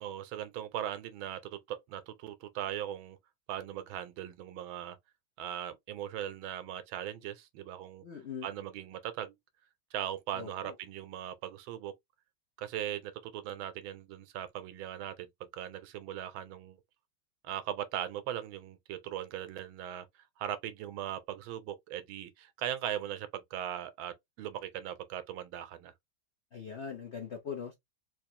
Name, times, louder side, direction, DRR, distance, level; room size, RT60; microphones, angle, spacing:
voice 1, 0.0-3.2 3.5-5.0 5.4-8.0 8.4-9.3 9.9-11.9 12.6-16.8 17.4-20.1 20.4-25.9, right 11 dB, 80° right, 1.4 m, -39 dB
voice 2, 8.0-8.5 10.3-10.7 26.5-27.7, left 7 dB, 50° left, 0.8 m, -41 dB
3.5 x 3.1 x 2.7 m
omnidirectional pair, 2.2 m